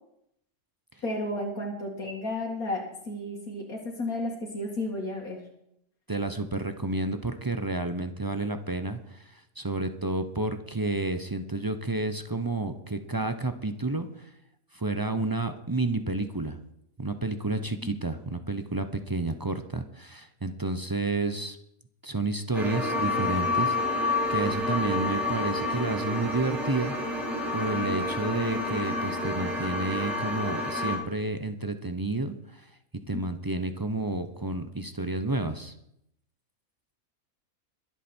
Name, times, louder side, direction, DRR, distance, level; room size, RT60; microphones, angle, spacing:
voice 1, 1.0-5.4 33.1-33.2, left 1 dB, 75° left, -3 dB, 2.5 m, -33 dB
voice 2, 6.1-14.3 14.7-16.6 17.0-21.6 22.0-23.8 24.3-26.9 27.5-32.7 33.1-35.7, right 2 dB, 30° right, 8 dB, 0.4 m, -30 dB
sound 1, 22.5-31.0, left 2 dB, ahead, 3.9 m, -29 dB
22.5 x 8.2 x 4.4 m, 0.76 s
omnidirectional pair, 1.6 m